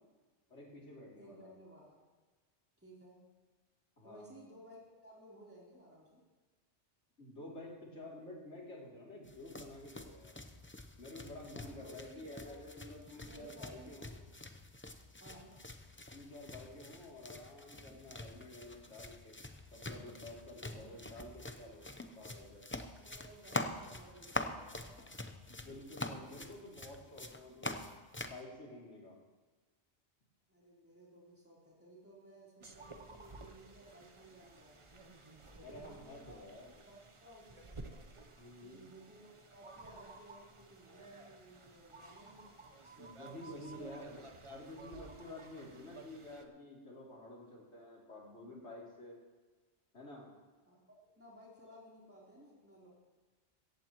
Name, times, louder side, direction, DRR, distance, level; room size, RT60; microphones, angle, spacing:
voice 1, 0.5-1.5 4.0-4.3 7.2-10.3 11.0-14.2 16.1-19.3 19.7-21.9 22.2-22.6 25.5-27.8 28.2-29.2 35.6-36.7 38.4-38.8 43.0-49.2 49.9-50.3, left 1 dB, 85° left, -4 dB, 3.4 m, -50 dB
voice 2, 1.2-2.0 2.8-3.2 4.0-6.2 11.6-12.7 13.0-14.0 15.2-15.5 20.6-21.1 23.0-25.1 30.5-34.8 35.6-36.5 36.8-38.0 38.6-42.6 43.3-43.9 50.7-52.9, right 1 dB, 10° right, -6 dB, 3.8 m, -57 dB
sound 1, 9.3-28.4, left 2 dB, 15° left, 0.6 m, -45 dB
sound 2, 32.6-46.5, right 2 dB, 30° right, 0.9 m, -54 dB
17.0 x 15.0 x 3.1 m, 1.3 s
omnidirectional pair, 1.2 m